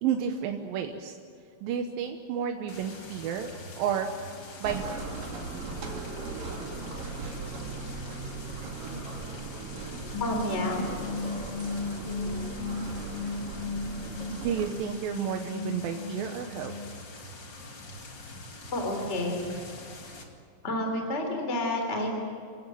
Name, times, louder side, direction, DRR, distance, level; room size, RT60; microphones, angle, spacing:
voice 1, 0.0-1.2 1.6-3.5 3.8-4.1 4.6-4.8 14.3-16.7, right 8 dB, 90° right, 4 dB, 2.9 m, -31 dB
sound 1, 2.7-20.2, left 2 dB, 35° left, 2.6 m, -45 dB
sound 2, 4.6-14.7, right 4 dB, 70° right, 4.3 m, -38 dB
sound 3, 10.1-16.9, left 4 dB, 65° left, 3.0 m, -36 dB
voice 2, 10.2-10.9 18.7-19.5 20.6-22.2, left 1 dB, 20° left, 3 dB, 3.6 m, -29 dB
29.5 x 16.5 x 9.2 m, 2.3 s
omnidirectional pair, 4.0 m